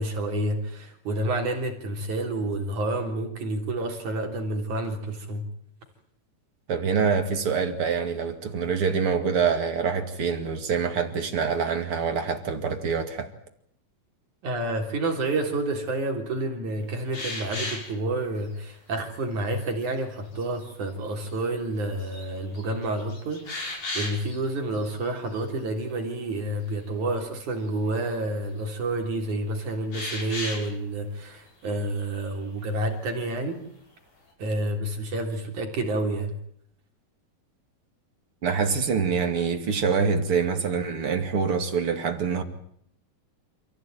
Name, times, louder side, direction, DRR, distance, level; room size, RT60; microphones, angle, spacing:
voice 1, 0.0-5.5 14.4-33.6 34.4-36.4, right 2 dB, 60° right, 4.9 m, -29 dB
voice 2, 6.7-13.3 38.4-42.4, right 6 dB, 45° right, 2.8 m, -25 dB
sound 1, 17.1-17.9 18.6-18.7 19.2-19.7 20.3-20.7 21.3-21.4 21.8-22.3 22.5-24.4 24.7-25.0 25.3-25.4 29.9-30.7 31.7-32.3, left 2 dB, 60° left, 7.9 m, -35 dB
29.0 x 15.5 x 9.2 m
omnidirectional pair, 3.9 m